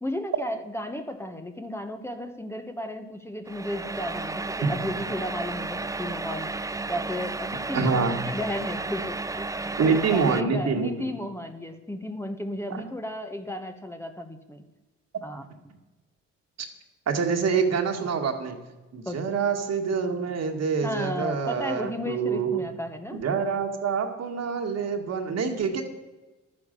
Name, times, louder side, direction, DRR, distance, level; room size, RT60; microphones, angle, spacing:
voice 1, 0.0-6.5 6.9-7.9 8.3-14.6 15.2-15.4 19.1-19.2 20.8-23.2, left 1 dB, 10° left, 6 dB, 1.1 m, -34 dB
sound 1, 3.5-10.4, right 3 dB, 10° right, 0.4 m, -33 dB
voice 2, 7.7-8.2 9.8-10.9 12.7-12.8 16.6-16.7 17.1-18.6 18.9-22.6 23.1-25.8, right 5 dB, 55° right, 4 dB, 2.1 m, -26 dB
12.0 x 9.7 x 6.8 m, 1.1 s
cardioid pair, 90°, 30 cm